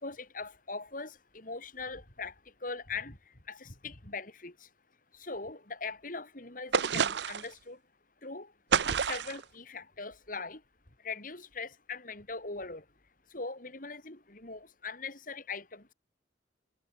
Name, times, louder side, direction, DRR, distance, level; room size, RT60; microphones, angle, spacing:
voice 1, 0.0-2.3 2.6-3.2 3.5-4.5 5.2-7.8 8.2-8.5 9.0-10.6 11.0-12.8 13.3-15.9, left 4 dB, 50° left, 3.8 m, -41 dB
sound 1, 6.7-7.5 8.7-9.4, right 6 dB, 70° right, 0.7 m, -28 dB
head